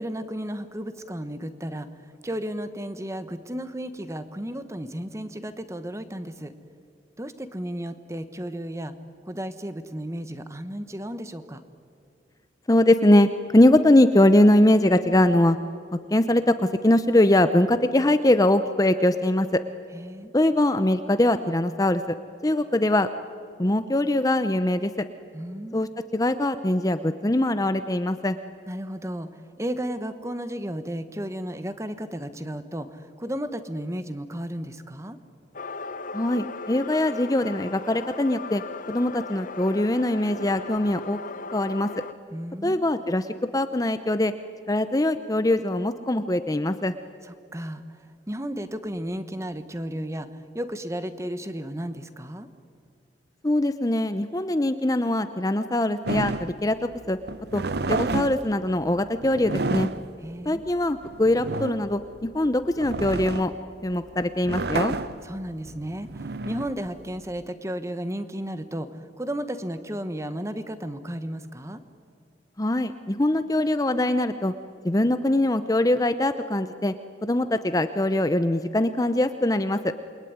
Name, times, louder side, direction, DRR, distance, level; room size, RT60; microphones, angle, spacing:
voice 1, 0.0-1.9 2.2-6.5 7.2-8.9 9.2-11.6 19.9-20.3 25.3-25.8 28.7-29.3 29.6-35.2 42.3-42.8 47.5-47.8 48.3-50.3 50.5-52.5 60.2-60.6 65.2-68.9 69.2-71.8, equal, 15° right, 10 dB, 1.3 m, -33 dB
voice 2, 12.7-15.6 16.1-16.6 16.8-19.6 20.3-22.2 22.4-23.1 23.6-24.9 25.7-28.4 36.1-38.6 38.9-41.2 41.5-41.9 42.6-43.3 43.5-44.3 44.7-46.9 53.4-57.2 57.5-57.6 57.9-59.9 60.5-63.5 63.8-64.9 72.6-74.5 74.8-76.9 77.2-79.9, left 1 dB, 20° left, 10 dB, 0.7 m, -22 dB
sound 1, 35.5-42.1, left 3 dB, 50° left, 0.9 m, -37 dB
sound 2, 56.1-67.4, right 3 dB, 65° right, 0.8 m, -31 dB
28.0 x 22.0 x 9.6 m, 2.3 s
head